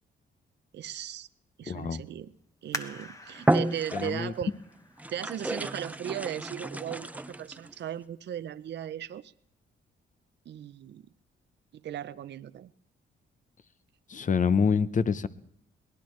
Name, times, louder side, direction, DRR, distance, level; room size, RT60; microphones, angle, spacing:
voice 1, 0.7-1.3 1.6-2.3 2.6-4.5 5.1-9.3 10.5-11.0 11.7-12.7, right 10 dB, 60° right, 14 dB, 0.6 m, -37 dB
voice 2, 1.7-2.0 3.9-4.3 14.1-15.3, left 6 dB, 40° left, 15 dB, 0.7 m, -26 dB
sound 1, 2.7-6.1 6.7-6.8 7.4-7.8 8.2-8.3, left 2 dB, 15° left, 1.1 m, -43 dB
sound 2, 2.7-3.0 3.4-4.4 5.0-7.7, right 1 dB, 5° right, 0.5 m, -31 dB
23.0 x 17.5 x 3.2 m, 0.71 s
cardioid pair, 85°, 21 cm